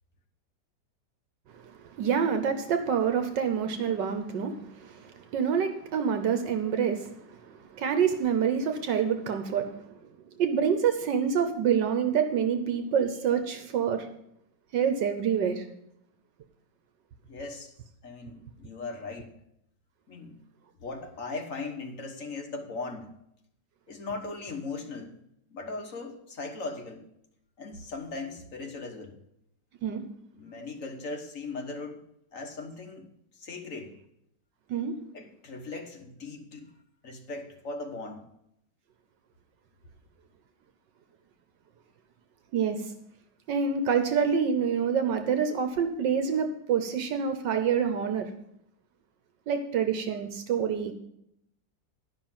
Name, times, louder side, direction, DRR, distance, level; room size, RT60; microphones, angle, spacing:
voice 1, 1.6-9.8 10.4-14.1 14.7-15.7 29.8-30.0 34.7-34.9 42.5-42.9 43.5-48.3 49.5-50.9, right 7 dB, 75° right, 7 dB, 1.5 m, -27 dB
voice 2, 17.3-17.7 18.0-19.3 20.1-20.4 20.8-23.1 23.9-25.1 25.5-27.1 27.6-29.2 30.3-32.0 32.3-33.1 33.4-33.9 35.1-36.7 37.0-38.3, left 3 dB, 50° left, 3 dB, 1.5 m, -38 dB
11.5 x 5.7 x 7.4 m, 0.77 s
omnidirectional pair, 2.0 m